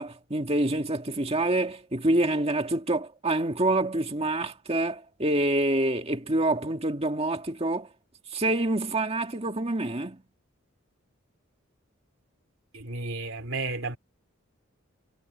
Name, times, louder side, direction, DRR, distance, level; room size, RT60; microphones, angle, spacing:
voice 1, 0.0-7.9 8.3-10.2, right 1 dB, 25° right, 1.9 m, -27 dB
voice 2, 12.7-14.0, right 3 dB, 60° right, 3.3 m, -32 dB
head